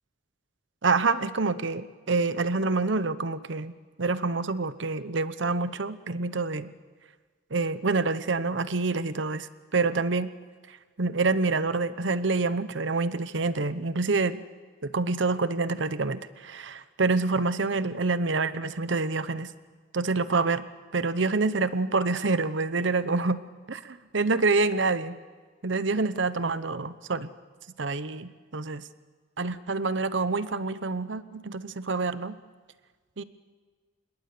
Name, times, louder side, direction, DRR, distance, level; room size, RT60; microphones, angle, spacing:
voice 1, 0.8-3.7 4.0-6.7 7.5-9.5 9.7-10.3 11.0-14.4 14.8-19.5 19.9-20.6 20.9-23.4 23.7-23.8 24.1-25.2 25.6-27.3 27.8-28.8 29.4-32.4 33.2-33.3, right 3 dB, 75° right, 14 dB, 0.9 m, -27 dB
27.0 x 21.5 x 6.8 m, 1.5 s
head